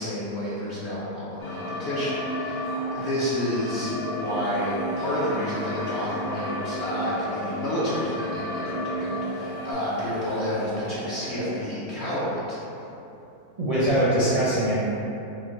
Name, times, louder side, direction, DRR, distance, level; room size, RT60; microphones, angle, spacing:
voice 1, 0.0-2.7 2.9-12.6, equal, 60° left, -8 dB, 0.7 m, -30 dB
sound 1, 1.4-9.7, left 1 dB, 80° left, 1.2 m, -32 dB
sound 2, 4.4-6.6 7.9-8.0 8.7-12.3 13.4-13.6, right 2 dB, 80° right, 1.1 m, -41 dB
voice 2, 13.6-14.9, right 1 dB, 50° right, -10 dB, 0.4 m, -22 dB
4.4 x 2.3 x 3.7 m, 2.9 s
omnidirectional pair, 1.7 m